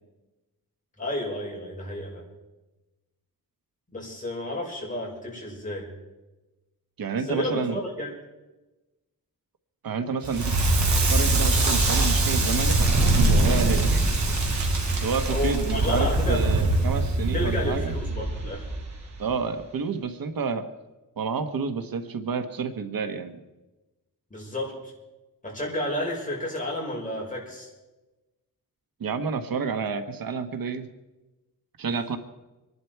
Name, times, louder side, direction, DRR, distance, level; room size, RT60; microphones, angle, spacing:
voice 1, 1.0-2.2 3.9-5.9 7.3-8.1 15.3-16.7 17.3-18.7 24.3-24.9 25.4-27.7, left 1 dB, 20° left, -2 dB, 5.7 m, -31 dB
voice 2, 7.0-7.8 9.8-10.5 11.1-14.0 15.0-17.9 19.2-20.7 21.2-23.4 29.0-30.9 31.8-32.2, right 5 dB, 75° right, 9 dB, 1.3 m, -29 dB
Crackle, 10.2-19.2, right 2 dB, 55° right, 3.6 m, -23 dB
25.5 x 11.5 x 4.7 m, 1.1 s
wide cardioid pair, 130°, 35 cm